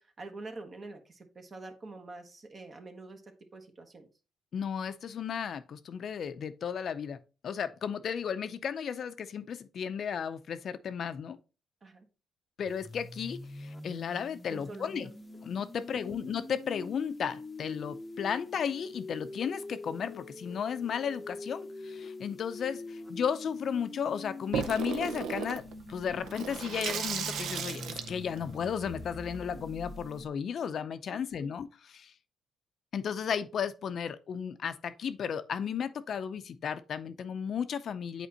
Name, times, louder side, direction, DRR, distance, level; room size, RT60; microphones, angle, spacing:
voice 1, 0.0-3.2 3.5-4.1 11.8-12.1 14.5-15.1 18.3-18.4 31.1-31.5, right 2 dB, 40° right, 1.1 m, -46 dB
voice 2, 4.5-7.2 7.4-11.4 12.6-15.1 15.4-27.8 28.1-32.1 32.9-38.3, left 7 dB, 60° left, 0.5 m, -34 dB
sound 1, 12.7-30.3, left 3 dB, 20° left, 0.7 m, -45 dB
Water tap faucet / Sink (filling or washing), 24.5-29.7, right 7 dB, 80° right, 0.6 m, -36 dB
8.1 x 4.2 x 2.8 m
cardioid pair, 90°, 0 cm